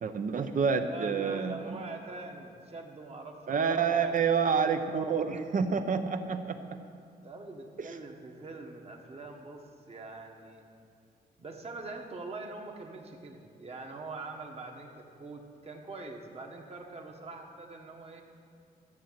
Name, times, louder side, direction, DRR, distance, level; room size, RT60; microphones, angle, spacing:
voice 1, 0.0-1.8 3.5-6.8 7.8-8.0, right 6 dB, 55° right, 8 dB, 0.9 m, -28 dB
voice 2, 0.7-4.4 7.2-10.6 11.4-18.2, right 3 dB, 40° right, 2 dB, 1.5 m, -44 dB
13.5 x 7.2 x 7.6 m, 2.3 s
cardioid pair, 110°, 16 cm